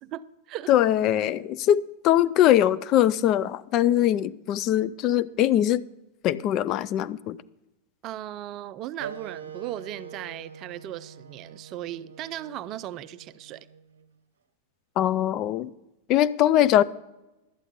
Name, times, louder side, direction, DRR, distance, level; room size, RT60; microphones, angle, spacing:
voice 1, 0.0-0.7 8.0-13.7, right 12 dB, 35° right, 0.4 m, -37 dB
voice 2, 0.7-5.8 6.2-7.4 15.0-15.7 16.1-16.8, left 12 dB, 35° left, 0.3 m, -22 dB
Wind instrument woodwind instrument, 9.0-14.1, right 7 dB, 65° right, 0.7 m, -44 dB
12.0 x 8.4 x 5.1 m
figure-of-eight pair, 90°, 0 cm